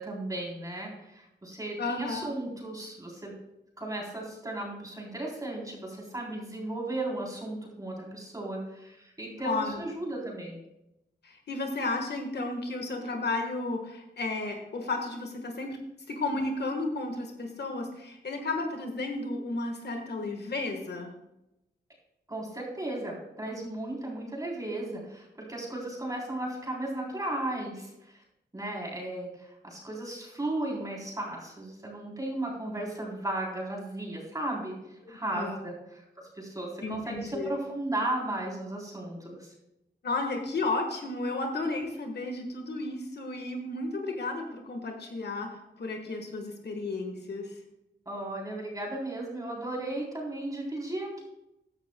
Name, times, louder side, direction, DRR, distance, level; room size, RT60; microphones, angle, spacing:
voice 1, 0.0-3.3 3.8-10.6 22.3-28.2 28.5-39.5 48.1-51.2, right 1 dB, 20° right, -3 dB, 3.4 m, -35 dB
voice 2, 1.8-2.3 9.4-9.8 11.2-15.8 16.1-21.1 35.3-35.6 36.8-37.5 40.0-47.6, left 2 dB, 65° left, 4 dB, 1.4 m, -33 dB
14.5 x 11.0 x 2.2 m, 0.89 s
wide cardioid pair, 95°, 18 cm